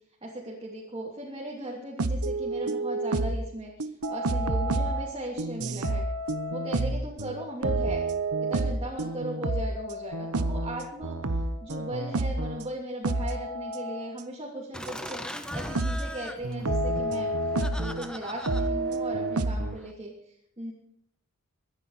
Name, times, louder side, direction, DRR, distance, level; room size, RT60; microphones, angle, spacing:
voice 1, 0.2-6.0 6.5-8.0 8.4-11.2 11.6-15.2 15.5-17.3 17.8-20.7, right 1 dB, 25° right, -4 dB, 3.0 m, -37 dB
sound 1, 2.0-3.5 3.8-12.7 13.0-14.1 15.1-15.2 15.7-16.1 16.4-18.1 18.5-19.8, right 2 dB, 80° right, 1.0 m, -29 dB
Laughter, 14.7-19.9, equal, 5° left, 1.1 m, -40 dB
24.0 x 10.5 x 4.2 m, 0.74 s
head